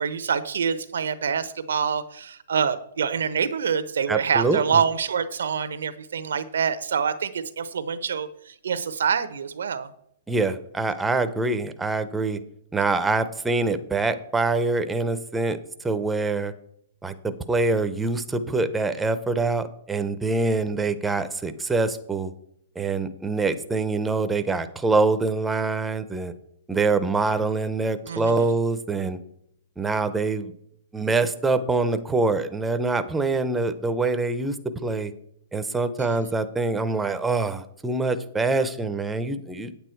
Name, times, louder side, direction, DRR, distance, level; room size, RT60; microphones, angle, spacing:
voice 1, 0.0-9.9 28.1-28.5 36.0-36.2, right 6 dB, 85° right, 12 dB, 0.9 m, -26 dB
voice 2, 4.1-4.6 10.3-12.4 12.7-15.6 15.8-16.5 17.0-22.3 22.8-26.3 26.7-29.2 29.8-30.5 30.9-34.5 34.8-35.1 35.5-39.7, right 3 dB, 5° right, 10 dB, 0.6 m, -25 dB
8.8 x 8.3 x 4.5 m, 0.71 s
hypercardioid pair, 150°, 0 cm